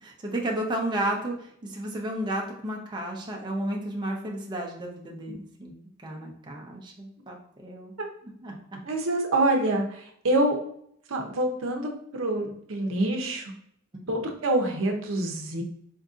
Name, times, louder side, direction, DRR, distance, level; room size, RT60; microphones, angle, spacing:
voice 1, 0.0-1.4 1.6-5.7 6.0-7.9 8.4-8.8 13.9-14.0, right 1 dB, 20° right, -1 dB, 0.5 m, -32 dB
voice 2, 8.8-10.6 11.1-13.4 14.1-15.6, right 1 dB, 70° right, 2 dB, 0.7 m, -26 dB
4.4 x 2.6 x 2.4 m, 0.67 s
head